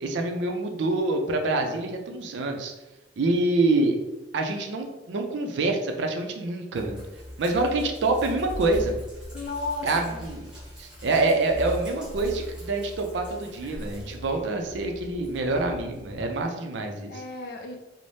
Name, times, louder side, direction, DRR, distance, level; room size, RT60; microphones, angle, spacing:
voice 1, 0.0-2.7 3.2-4.0 4.3-7.0 7.4-9.0 9.8-10.5 10.8-17.1, right 2 dB, 75° right, 4 dB, 0.4 m, -26 dB
Sink (filling or washing), 6.7-16.4, left 1 dB, 5° right, 0.7 m, -40 dB
voice 2, 9.3-10.3 14.2-14.3 17.1-17.7, left 3 dB, 55° left, 2 dB, 0.4 m, -34 dB
2.6 x 2.0 x 3.2 m, 1.0 s
head